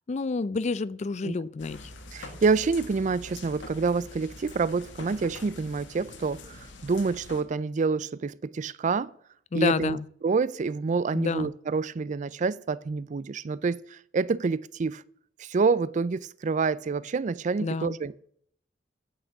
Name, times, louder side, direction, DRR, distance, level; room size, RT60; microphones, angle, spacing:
voice 1, 0.1-1.9 9.5-10.0 11.1-11.5 17.6-18.0, left 4 dB, 40° left, 0.4 m, -29 dB
sound 1, 1.6-7.4, left 2 dB, 90° left, 1.6 m, -44 dB
voice 2, 2.1-9.1 9.5-10.0 10.2-15.0 15.4-18.2, right 4 dB, 40° right, 0.4 m, -27 dB
9.3 x 6.3 x 8.0 m
head